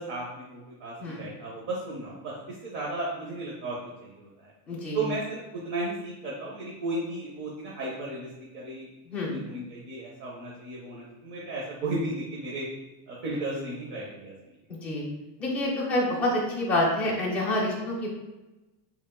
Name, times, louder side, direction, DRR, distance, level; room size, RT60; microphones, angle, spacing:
voice 1, 0.0-4.5 4.9-8.3 8.5-8.9 9.2-12.7 13.1-14.3, right 2 dB, 50° right, -4 dB, 1.0 m, -34 dB
voice 2, 4.7-5.0 9.1-9.3 14.7-15.0 15.4-18.1, left 1 dB, 5° left, -6 dB, 0.4 m, -27 dB
3.5 x 2.5 x 3.7 m, 1.0 s
cardioid pair, 175°, 48 cm